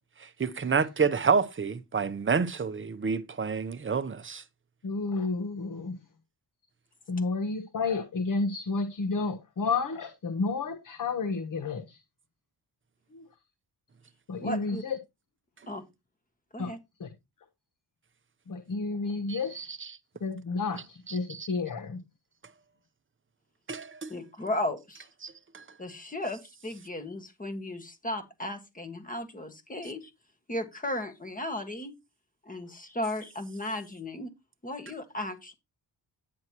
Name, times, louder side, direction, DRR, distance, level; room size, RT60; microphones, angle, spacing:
voice 1, 0.4-4.4 19.3-19.9 21.1-21.5 23.7-24.1 25.2-25.6, right 5 dB, 30° right, 0.8 m, -29 dB
voice 2, 4.8-6.0 7.1-12.0 13.1-13.2 14.3-15.0 16.6-16.7 17.0-17.1 18.5-19.8 20.2-22.0, left 4 dB, 50° left, 1.1 m, -31 dB
voice 3, 14.4-14.8 15.7-15.8 16.5-16.8 24.1-25.1 25.8-30.1 30.5-31.9 32.4-34.3 34.6-35.5, left 1 dB, 20° left, 1.6 m, -35 dB
9.5 x 9.3 x 3.0 m
wide cardioid pair, 165°, 42 cm